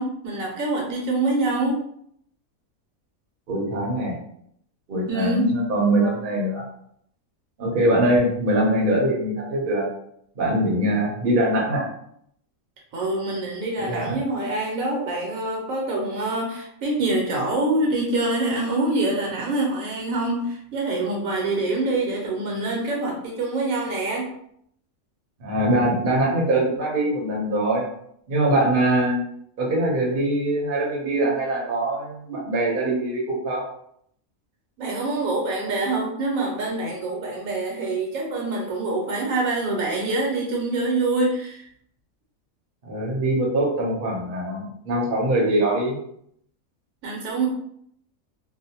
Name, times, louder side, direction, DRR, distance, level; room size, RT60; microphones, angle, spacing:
voice 1, 0.0-1.8 5.1-5.5 12.9-24.3 34.8-41.7 47.0-47.5, right 2 dB, 75° right, -1 dB, 1.1 m, -25 dB
voice 2, 3.5-4.1 4.9-6.6 7.6-9.9 10.4-11.8 13.8-14.2 25.4-27.9 28.3-29.2 29.6-33.6 42.8-46.0, right 1 dB, 45° right, -3 dB, 0.8 m, -22 dB
2.6 x 2.1 x 2.8 m, 0.69 s
omnidirectional pair, 1.5 m